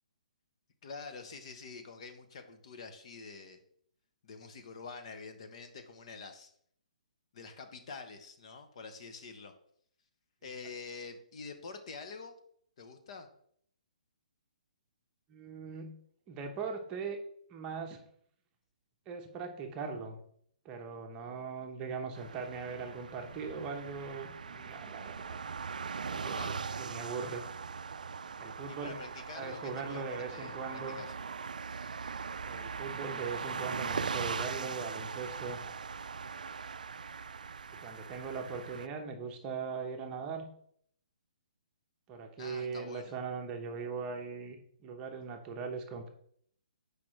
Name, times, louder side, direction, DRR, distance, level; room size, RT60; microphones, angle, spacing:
voice 1, 0.8-3.6 4.2-6.5 7.3-9.5 10.4-12.3 12.8-13.3 26.2-26.7 28.7-31.1 42.4-43.2, left 4 dB, 50° left, 6 dB, 1.0 m, -47 dB
voice 2, 15.3-15.9 16.3-17.2 17.5-18.0 19.1-20.2 20.6-25.4 25.8-27.4 28.4-29.0 29.3-31.0 32.4-35.6 37.8-40.5 42.1-44.6 44.8-46.1, right 5 dB, 20° right, 4 dB, 0.8 m, -40 dB
sound 1, 22.1-38.9, right 5 dB, 90° right, 0.3 m, -40 dB
8.4 x 4.9 x 3.2 m, 0.65 s
hypercardioid pair, 155°, 4 cm